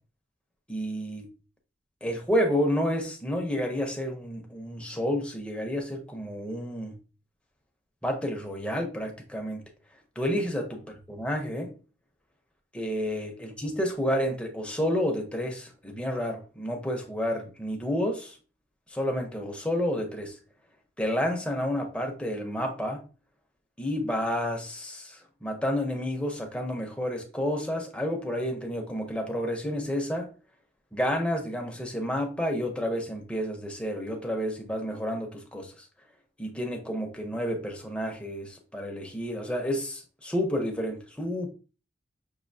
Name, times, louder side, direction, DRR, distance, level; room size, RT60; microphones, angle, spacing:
voice 1, 0.7-1.3 2.0-7.0 8.0-9.6 10.2-11.7 12.7-18.4 18.9-20.4 21.0-23.0 23.8-30.3 30.9-35.8 36.4-41.5, equal, 5° left, 0.8 m, -30 dB
6.3 x 2.7 x 2.7 m
head